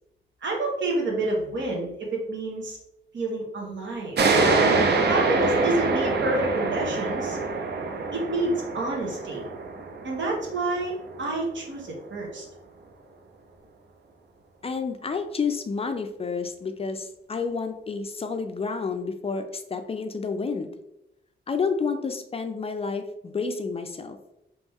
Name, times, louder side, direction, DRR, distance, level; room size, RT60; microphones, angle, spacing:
voice 1, 0.4-2.8 3.1-4.2 5.0-7.4 8.1-9.4 10.0-10.9 11.2-12.4, right 2 dB, 75° right, -1 dB, 1.1 m, -28 dB
sound 1, 4.2-11.3, right 3 dB, 60° right, 0.6 m, -25 dB
voice 2, 14.6-20.7 21.5-24.2, left 5 dB, 30° left, 7 dB, 0.3 m, -30 dB
3.1 x 3.0 x 3.5 m, 0.86 s
wide cardioid pair, 120°, 19 cm